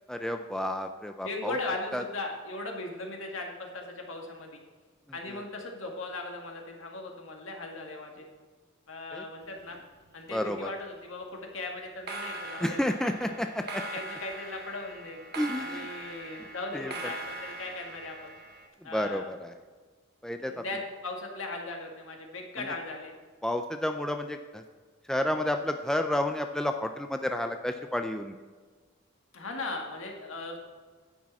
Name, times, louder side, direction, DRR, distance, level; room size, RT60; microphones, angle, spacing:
voice 1, 0.1-1.6 1.9-2.0 5.3-5.4 9.1-9.2 10.3-10.7 12.6-13.8 15.4-15.9 16.7-16.9 18.8-19.5 20.2-20.6 22.6-22.7 23.4-24.6 25.1-28.3, left 1 dB, 5° left, 6 dB, 0.4 m, -31 dB
voice 2, 1.2-4.6 5.1-8.2 8.9-9.8 10.1-13.3 13.6-15.2 15.6-18.3 18.8-19.3 20.5-23.1 29.3-30.6, left 2 dB, 70° left, 1 dB, 1.8 m, -38 dB
sound 1, 9.4-10.3 10.6-11.0 11.9-18.7, right 2 dB, 50° right, 1.2 m, -41 dB
10.5 x 8.6 x 4.2 m, 1.5 s
head